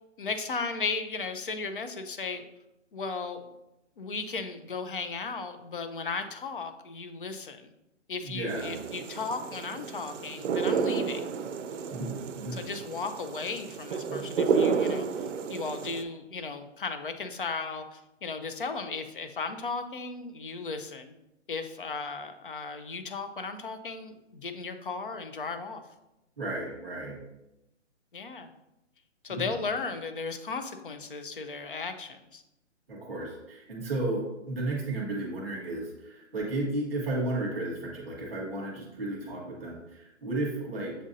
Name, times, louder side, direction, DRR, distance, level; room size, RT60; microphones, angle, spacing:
voice 1, 0.2-2.5 2.9-3.5 4.0-7.7 8.1-11.4 12.5-21.1 21.5-25.8 28.1-28.5 29.2-32.4, left 4 dB, 45° left, 8 dB, 0.4 m, -36 dB
voice 2, 8.2-8.8 11.9-12.6 14.1-14.2 26.4-27.2 29.3-29.6 32.9-40.9, right 2 dB, 5° right, -14 dB, 0.5 m, -33 dB
sound 1, 8.5-16.0, right 5 dB, 80° right, 0.5 m, -31 dB
7.3 x 2.5 x 2.6 m, 0.92 s
hypercardioid pair, 170°, 37 cm